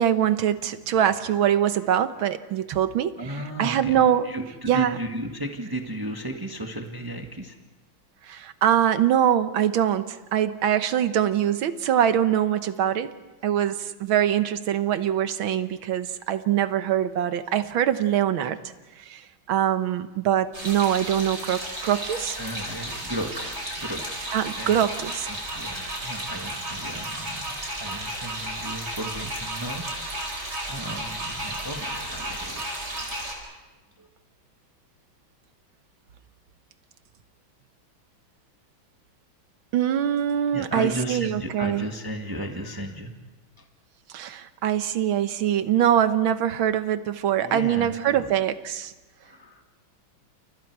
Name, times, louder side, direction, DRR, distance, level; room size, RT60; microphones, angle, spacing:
voice 1, 0.0-3.2 3.6-4.3 4.7-4.9 8.3-13.1 13.4-18.6 19.0-19.2 19.5-22.4 24.3-25.3 39.7-41.8 44.1-48.9, right 10 dB, 80° right, 11 dB, 1.8 m, -23 dB
voice 2, 3.2-7.5 22.4-24.2 24.5-24.9 25.2-30.4 30.7-33.3 34.0-34.1 40.5-43.1 43.6-43.7 47.4-48.3 49.2-49.6, right 1 dB, 10° right, 3 dB, 1.5 m, -35 dB
sound 1, 20.5-33.3, right 1 dB, 50° right, 5.8 m, -33 dB
29.5 x 29.0 x 4.7 m, 1.1 s
omnidirectional pair, 2.2 m